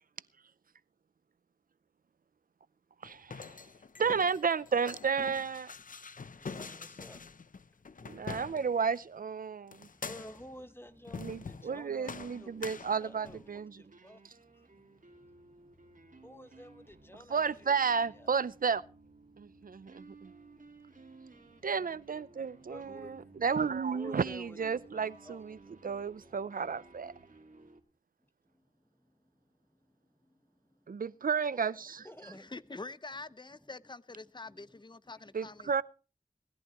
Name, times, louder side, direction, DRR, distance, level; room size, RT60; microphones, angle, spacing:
sound 1, 3.0-9.0 9.7-10.5 11.1-11.8 12.1-13.5, left 5 dB, 75° left, 0.7 m, -45 dB
voice 1, 3.0-3.6 4.0-5.7 8.0-9.9 11.2-13.8 17.3-18.8 19.4-20.3 21.6-27.1 30.9-32.1 35.3-35.8, right 6 dB, 90° right, 0.6 m, -32 dB
voice 2, 6.3-7.2 8.0-8.1 9.8-18.4 19.5-19.6 20.3-21.7 22.3-23.4 23.9-24.6 24.9-26.3 27.5-27.7 28.4-31.0 32.0-32.7 33.6-33.7 34.2-35.7, equal, 15° left, 1.5 m, -54 dB
sound 2, 10.9-27.8, right 3 dB, 70° right, 2.1 m, -58 dB
sound 3, 15.1-27.3, left 1 dB, 35° right, 4.6 m, -70 dB
voice 3, 32.3-35.8, left 3 dB, 35° left, 0.7 m, -46 dB
19.5 x 14.5 x 3.0 m
wide cardioid pair, 50°, 14 cm